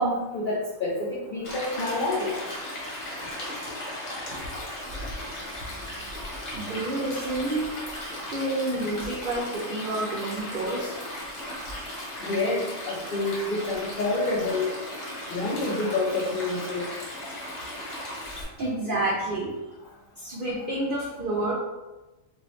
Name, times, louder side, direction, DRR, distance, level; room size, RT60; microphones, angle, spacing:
voice 1, 0.0-2.4 12.2-14.8 15.3-16.9, left 2 dB, 75° left, -5 dB, 0.4 m, -28 dB
Stream, 1.4-18.4, left 1 dB, 50° left, 0.9 m, -36 dB
voice 2, 6.5-7.7 8.3-11.0 18.6-19.5 20.2-21.5, right 2 dB, 85° right, -4 dB, 0.4 m, -29 dB
2.7 x 2.4 x 3.0 m, 1.1 s
omnidirectional pair, 1.5 m